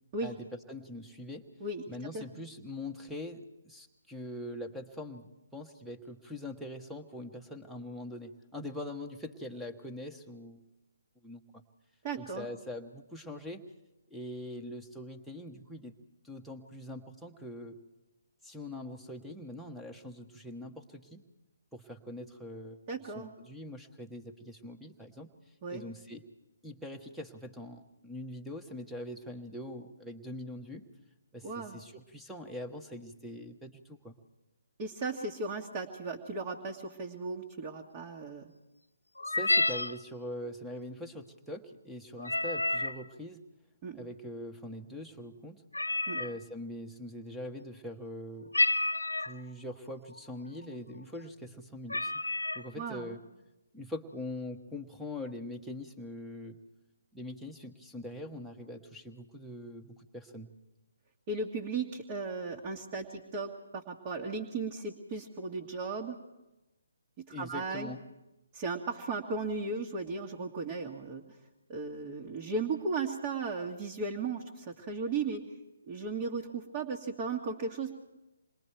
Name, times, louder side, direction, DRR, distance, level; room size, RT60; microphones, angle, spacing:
voice 1, 0.7-1.5 1.9-10.6 11.2-11.6 12.2-13.6 14.1-16.0 16.2-17.8 18.4-21.2 21.7-22.8 23.1-25.3 25.7-26.2 26.6-30.8 31.3-34.2 39.3-43.4 43.9-45.6 46.1-48.5 49.2-52.1 52.5-53.2 53.7-56.6 57.1-60.5 67.3-68.0, left 1 dB, ahead, 4 dB, 1.2 m, -43 dB
voice 2, 12.0-12.5 22.9-23.3 25.6-25.8 31.4-31.8 34.8-38.5 43.8-44.1 46.1-46.2 52.7-53.1 61.3-66.2 67.3-67.9 68.5-71.2 71.7-75.4 75.9-77.9, right 4 dB, 30° right, -1 dB, 1.7 m, -36 dB
sound 1, 39.2-40.0 42.2-43.0 45.7-46.3 48.5-49.4 50.2-50.3 50.6-50.9 51.5-51.6 51.9-52.7, left 2 dB, 80° left, 0.6 m, -29 dB
27.5 x 21.0 x 4.6 m, 0.99 s
figure-of-eight pair, 140°, 0 cm